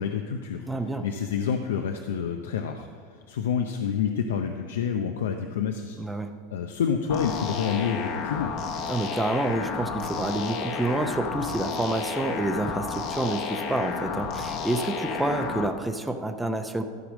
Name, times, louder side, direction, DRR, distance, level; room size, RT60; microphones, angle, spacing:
voice 1, 0.0-2.9 3.3-6.0 6.5-8.5, left 7 dB, 90° left, 5 dB, 0.6 m, -28 dB
voice 2, 0.7-1.0 6.0-6.3 8.9-16.8, right 2 dB, 5° right, 5 dB, 0.7 m, -28 dB
sound 1, 7.1-15.7, left 5 dB, 50° left, 1.1 m, -32 dB
13.5 x 4.9 x 6.3 m, 2.2 s
supercardioid pair, 115°, 0 cm